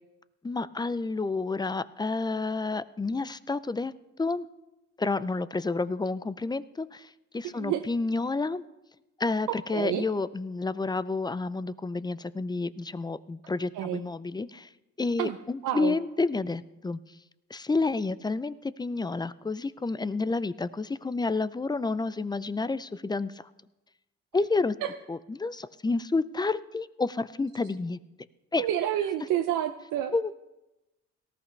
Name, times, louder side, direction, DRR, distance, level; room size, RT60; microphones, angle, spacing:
voice 1, 0.4-3.9 4.2-4.4 5.0-8.6 9.2-14.7 15.0-17.0 17.5-23.4 24.3-24.8 25.1-28.0 28.5-28.7 30.1-30.3, left 3 dB, 15° left, 16 dB, 0.4 m, -30 dB
voice 2, 7.4-7.9 9.5-10.0 13.7-14.0 15.2-15.4 15.6-15.9 24.8-24.9 28.6-30.3, right 11 dB, 85° right, 6 dB, 0.7 m, -29 dB
18.0 x 14.0 x 3.3 m, 0.98 s
cardioid pair, 90°, 30 cm